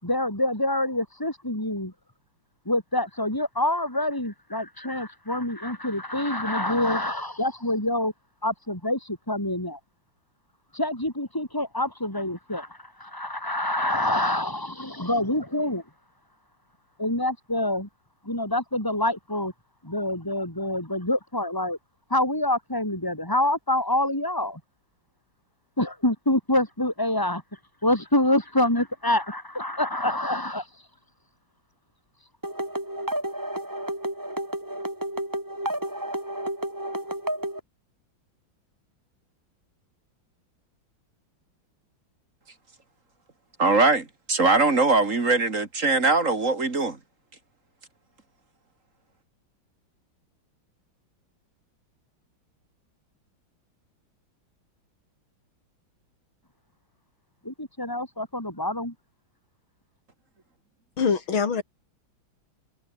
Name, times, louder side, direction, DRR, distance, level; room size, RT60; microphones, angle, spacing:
voice 1, 0.0-1.9 2.6-8.1 8.4-9.8 10.7-15.8 17.0-17.9 18.2-19.5 19.8-21.8 22.1-24.6 25.8-27.4 27.8-30.7 57.4-58.9, left 1 dB, 10° left, 7.0 m, -26 dB
sound 1, 32.4-37.6, right 1 dB, 10° right, 3.7 m, -31 dB
voice 2, 43.6-47.0, right 3 dB, 40° right, 3.0 m, -21 dB
voice 3, 61.0-61.6, left 6 dB, 80° left, 3.5 m, -23 dB
omnidirectional pair, 2.2 m